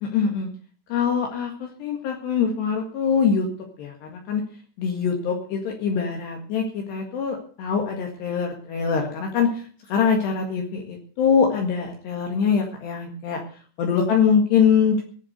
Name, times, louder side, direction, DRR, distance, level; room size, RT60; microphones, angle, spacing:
voice 1, 0.0-0.5 0.9-3.5 3.8-4.4 4.8-13.4 13.8-15.0, left 6 dB, 65° left, 2 dB, 3.7 m, -23 dB
18.0 x 7.4 x 8.0 m, 0.43 s
omnidirectional pair, 5.7 m